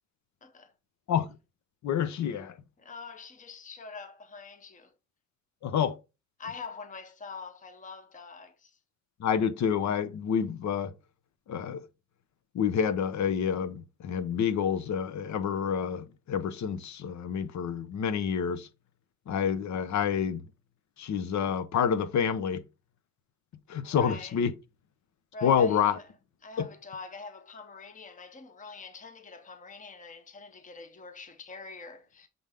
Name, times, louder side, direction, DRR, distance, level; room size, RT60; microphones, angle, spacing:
voice 1, 0.4-0.7 2.8-4.9 6.4-8.8 23.8-24.4 25.3-26.1 26.4-32.3, left 4 dB, 25° left, 0.9 m, -44 dB
voice 2, 1.8-2.5 5.6-6.0 9.2-10.9 11.5-11.8 12.5-18.7 19.3-20.4 21.0-22.6 23.7-24.5 25.4-26.0 26.6-26.7, left 7 dB, 65° left, 0.9 m, -28 dB
7.1 x 3.9 x 3.5 m
cardioid pair, 90°, 30 cm